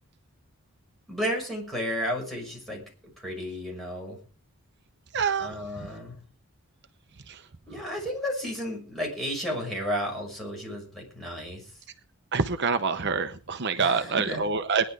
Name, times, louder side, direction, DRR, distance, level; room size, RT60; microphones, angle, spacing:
voice 1, 1.1-4.2 5.4-6.2 7.7-11.8 13.8-14.4, equal, ahead, -2 dB, 6.2 m, -33 dB
voice 2, 5.1-5.5 5.8-5.9 7.3-7.4 12.3-14.9, right 5 dB, 50° right, 9 dB, 0.9 m, -26 dB
19.0 x 10.5 x 4.9 m, 0.38 s
head